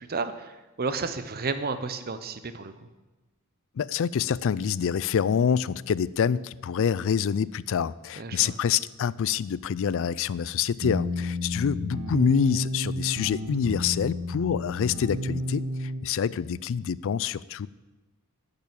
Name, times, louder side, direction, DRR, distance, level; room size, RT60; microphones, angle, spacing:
voice 1, 0.0-2.7 8.2-8.5, right 4 dB, 45° right, 11 dB, 0.8 m, -32 dB
voice 2, 3.8-17.7, left 7 dB, 65° left, 20 dB, 0.4 m, -26 dB
sound 1, 10.8-16.0, left 1 dB, 65° right, 1.3 m, -31 dB
10.5 x 6.8 x 8.5 m, 1.1 s
head